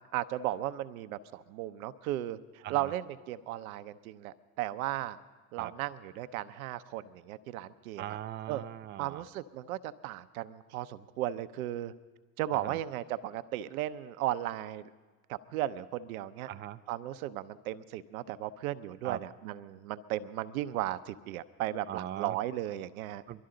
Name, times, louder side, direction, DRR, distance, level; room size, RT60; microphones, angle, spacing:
voice 1, 0.1-5.2 5.5-8.2 8.5-8.6 9.0-11.9 12.4-14.9 15.3-16.5 16.9-23.2, right 14 dB, 75° right, 13 dB, 0.7 m, -36 dB
voice 2, 8.0-9.2 12.6-12.8 16.5-16.8 19.0-19.2 21.9-22.4 23.3-23.5, right 12 dB, 25° right, 10 dB, 0.5 m, -40 dB
22.0 x 12.5 x 3.9 m, 1.3 s
hypercardioid pair, 90°, 43 cm